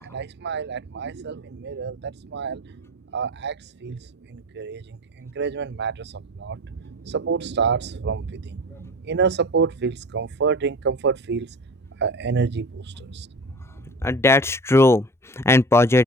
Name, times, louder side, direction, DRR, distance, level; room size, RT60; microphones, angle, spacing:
voice 1, 0.0-2.7 3.1-4.8 5.2-6.6 6.8-11.5 12.0-13.3, right 5 dB, 50° right, 0.5 m, -27 dB
voice 2, 14.0-16.0, left 2 dB, 10° left, 0.5 m, -18 dB
head